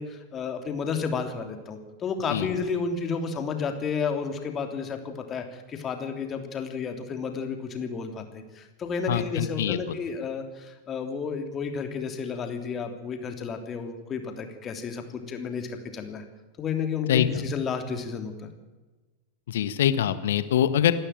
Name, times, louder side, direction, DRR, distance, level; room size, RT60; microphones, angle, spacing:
voice 1, 0.0-16.2 16.6-18.5, left 5 dB, 25° left, 5 dB, 3.1 m, -32 dB
voice 2, 9.1-9.8 17.1-17.3 19.5-20.9, left 10 dB, 60° left, 12 dB, 1.5 m, -23 dB
27.5 x 12.0 x 9.1 m, 1.2 s
figure-of-eight pair, 90°, 0 cm